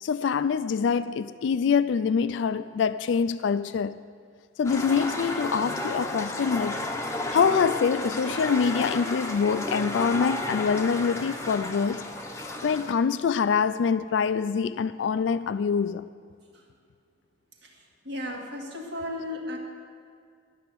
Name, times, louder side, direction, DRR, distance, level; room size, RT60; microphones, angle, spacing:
voice 1, 0.0-4.0 4.6-6.9 7.3-12.1 12.6-16.1, left 6 dB, 80° left, 0.3 m, -25 dB
sound 1, 4.6-12.9, left 1 dB, 15° left, 0.8 m, -32 dB
voice 2, 18.0-19.6, left 1 dB, 60° right, 1.9 m, -34 dB
13.0 x 6.5 x 9.1 m
head